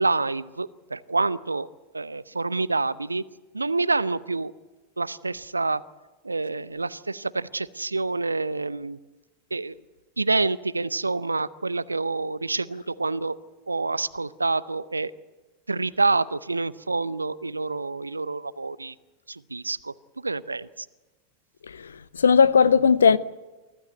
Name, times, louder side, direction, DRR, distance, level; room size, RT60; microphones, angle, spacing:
voice 1, 0.0-1.7 1.9-3.2 3.5-4.5 5.0-5.8 6.2-9.0 9.5-9.7 10.2-13.4 13.7-15.1 15.7-18.9 19.3-20.9, right 3 dB, 80° right, 0.7 m, -27 dB
voice 2, 21.7-23.2, left 6 dB, 70° left, 0.7 m, -18 dB
24.5 x 16.0 x 9.3 m
figure-of-eight pair, 90°, 0 cm